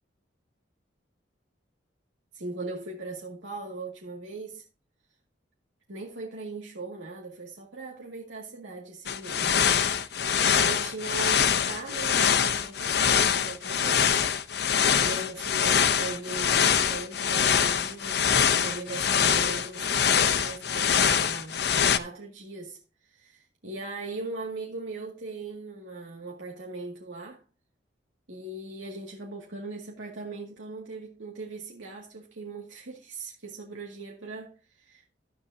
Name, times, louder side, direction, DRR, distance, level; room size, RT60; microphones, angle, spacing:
voice 1, 2.3-4.6 5.9-14.1 15.0-22.8 23.1-27.4 28.3-35.0, right 3 dB, 85° right, 2.1 m, -39 dB
sound 1, 9.1-22.0, left 7 dB, 55° left, 0.7 m, -24 dB
12.5 x 8.8 x 2.7 m
head